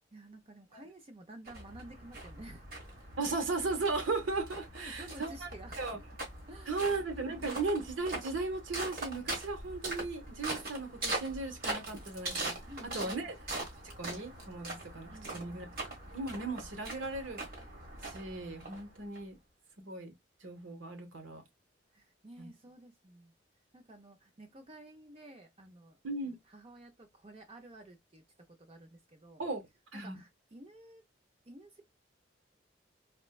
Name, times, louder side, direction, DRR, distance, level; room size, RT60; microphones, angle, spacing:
voice 1, 0.1-2.7 4.7-6.0 6.5-7.6 12.7-13.3 15.1-15.7 21.9-23.3 23.7-26.0 26.5-28.2 28.6-29.4 29.9-31.0 31.4-31.8, right 1 dB, 30° right, 0.5 m, -52 dB
sound 1, 1.5-19.2, right 2 dB, 50° right, 1.5 m, -42 dB
voice 2, 3.2-5.5 5.8-6.0 6.7-12.6 12.8-13.3 13.8-15.7 16.1-17.4 18.0-19.4 19.8-20.1 20.4-21.4 22.4-22.5 26.0-26.4 29.4-29.6 29.9-30.2, right 3 dB, 85° right, 1.0 m, -36 dB
4.2 x 2.1 x 2.3 m
head